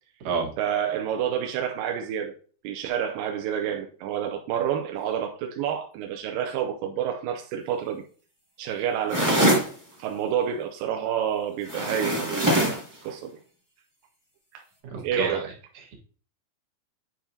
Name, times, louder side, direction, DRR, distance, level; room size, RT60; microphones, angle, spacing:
voice 1, 0.6-2.3 2.6-8.0 8.6-9.6 10.0-13.4 14.5-14.6 15.0-15.5, right 9 dB, 80° right, 2.1 m, -29 dB
sound 1, 9.1-9.7 11.7-12.9, right 1 dB, 25° right, 0.4 m, -22 dB
voice 2, 14.9-15.4, right 5 dB, 60° right, 2.8 m, -28 dB
9.2 x 4.5 x 2.7 m
omnidirectional pair, 4.5 m